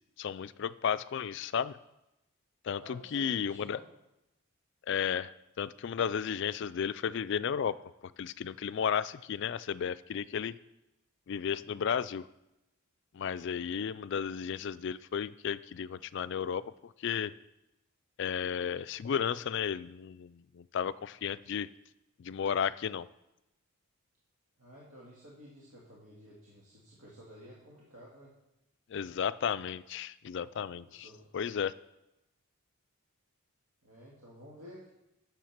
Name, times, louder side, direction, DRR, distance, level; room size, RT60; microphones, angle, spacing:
voice 1, 0.2-1.8 2.6-3.8 4.9-7.8 8.0-10.6 11.3-12.3 13.1-17.3 18.2-21.7 22.2-23.1 28.9-31.1 31.3-31.7, left 7 dB, 55° left, 16 dB, 0.3 m, -33 dB
voice 2, 2.8-3.9 24.6-28.3 30.7-31.3 33.8-34.9, equal, 75° right, -5 dB, 2.2 m, -53 dB
9.3 x 7.1 x 5.9 m, 0.92 s
head